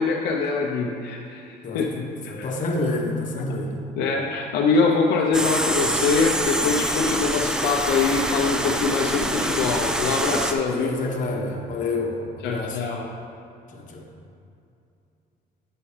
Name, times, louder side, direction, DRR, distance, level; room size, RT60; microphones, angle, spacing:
voice 1, 0.0-2.5 3.5-3.6 4.0-11.0 12.4-13.1, left 4 dB, 80° left, 0 dB, 0.7 m, -24 dB
voice 2, 2.3-3.8 10.6-12.8 13.7-14.1, left 2 dB, 50° left, 1 dB, 1.1 m, -28 dB
sound 1, 5.3-10.5, right 1 dB, 5° right, 0.4 m, -25 dB
8.8 x 6.9 x 3.3 m, 2.6 s
cardioid pair, 110°, 17 cm